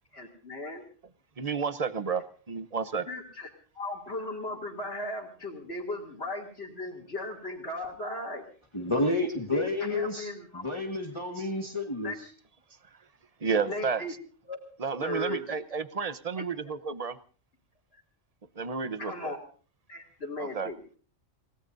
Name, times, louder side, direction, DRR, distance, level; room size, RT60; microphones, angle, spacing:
voice 1, 0.1-0.8 3.1-3.5 3.7-8.4 9.5-10.6 12.0-12.1 13.6-14.1 14.4-14.7 15.0-15.5 16.4-16.7 17.9-18.0 19.0-19.4 19.9-20.8, left 2 dB, 55° left, 3.1 m, -37 dB
voice 2, 1.4-3.1 11.4-11.5 13.4-14.0 14.8-17.2 18.5-19.3 20.4-20.7, right 5 dB, 35° right, 0.9 m, -31 dB
voice 3, 8.7-10.3 10.5-12.1, left 2 dB, 25° left, 1.7 m, -30 dB
29.0 x 18.0 x 2.7 m
omnidirectional pair, 1.3 m